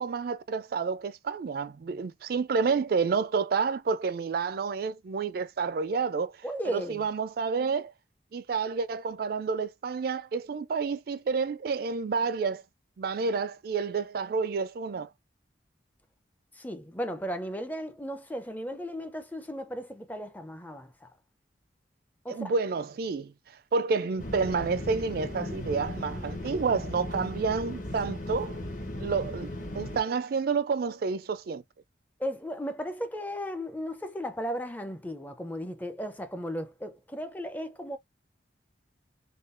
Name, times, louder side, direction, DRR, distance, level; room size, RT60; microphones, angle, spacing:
voice 1, 0.0-6.4 6.6-7.9 8.3-12.6 13.0-15.1 22.3-23.3 23.7-28.6 29.0-31.6, right 5 dB, 50° right, 0.3 m, -29 dB
voice 2, 6.4-7.0 16.5-21.1 22.2-22.6 32.2-38.0, equal, 10° left, 0.4 m, -35 dB
sound 1, 24.2-30.0, left 1 dB, 45° left, 1.1 m, -37 dB
3.7 x 2.3 x 2.5 m
head